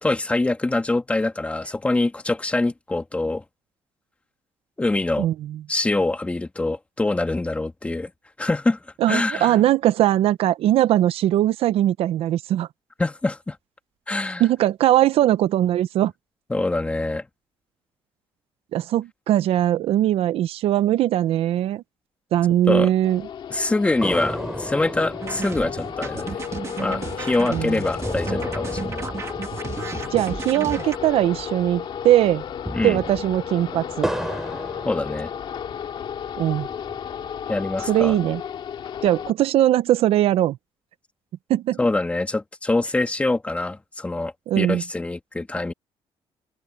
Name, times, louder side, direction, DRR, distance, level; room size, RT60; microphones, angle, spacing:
voice 1, 0.0-3.4 4.8-5.3 5.7-8.1 8.4-8.8 9.1-9.6 13.0-13.6 14.1-14.4 16.5-17.3 22.7-22.9 23.5-26.4 26.8-29.1 32.7-33.0 34.8-35.3 37.5-38.1 41.8-45.7, left 2 dB, 15° left, 2.4 m, -24 dB
voice 2, 5.2-5.6 9.0-12.7 14.4-16.1 18.7-21.8 22.3-23.2 27.5-27.8 30.1-32.4 32.8-34.1 36.4-36.7 37.9-38.4 39.0-40.6 41.5-41.8 44.5-44.8, right 13 dB, 75° right, 0.6 m, -20 dB
sound 1, 23.0-39.3, left 8 dB, 55° left, 2.5 m, -33 dB
sound 2, 24.0-31.6 31.9-32.0 32.4-35.8 36.3-37.3, right 1 dB, 5° right, 6.7 m, -34 dB
sound 3, 25.2-31.0, right 5 dB, 30° right, 2.1 m, -33 dB
open air
cardioid pair, 145°, 10 cm